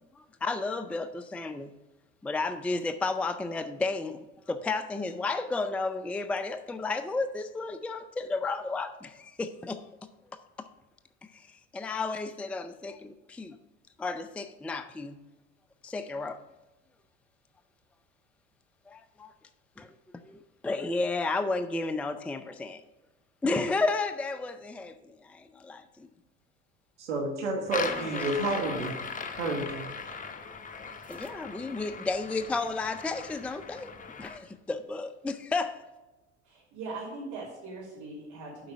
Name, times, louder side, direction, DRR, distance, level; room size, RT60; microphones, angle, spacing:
voice 1, 0.2-1.7 2.2-9.8 10.6-10.7 11.2-13.6 14.0-15.2 15.8-16.4 18.9-19.3 19.8-19.9 20.2-22.8 23.4-26.1 27.8-28.3 31.1-33.9 34.2-35.9, left 3 dB, 5° left, 10 dB, 0.4 m, -32 dB
voice 2, 27.0-29.0 29.4-29.9, right 2 dB, 90° right, 1 dB, 1.3 m, -30 dB
sound 1, 27.6-34.4, left 5 dB, 25° left, 0.9 m, -39 dB
voice 3, 36.4-38.7, right 3 dB, 60° right, -8 dB, 3.1 m, -40 dB
7.7 x 4.7 x 6.3 m, 1.1 s
hypercardioid pair, 75°, 34 cm